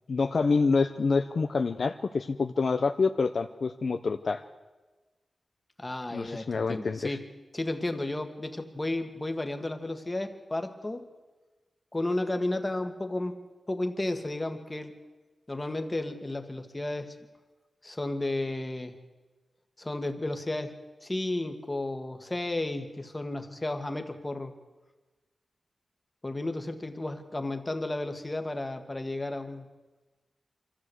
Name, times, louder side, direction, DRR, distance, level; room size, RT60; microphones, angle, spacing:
voice 1, 0.1-4.4 6.1-7.0, left 4 dB, 60° left, 7 dB, 0.7 m, -27 dB
voice 2, 5.8-7.3 7.5-11.1 11.9-15.0 15.5-17.2 17.8-19.0 19.8-24.5 26.2-29.6, left 2 dB, 20° left, 6 dB, 1.7 m, -33 dB
25.0 x 14.0 x 8.1 m, 1.2 s
wide cardioid pair, 130°, 0 cm